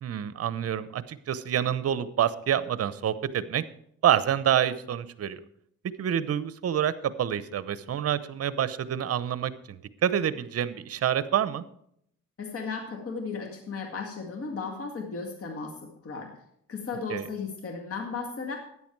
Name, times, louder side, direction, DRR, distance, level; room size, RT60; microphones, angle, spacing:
voice 1, 0.0-3.6 4.0-5.4 6.0-11.6 17.1-17.3, right 10 dB, 55° right, 15 dB, 0.8 m, -27 dB
voice 2, 12.4-16.3 16.7-18.6, left 4 dB, 50° left, 3 dB, 2.1 m, -35 dB
13.0 x 9.8 x 4.6 m, 0.71 s
cardioid pair, 90°, 30 cm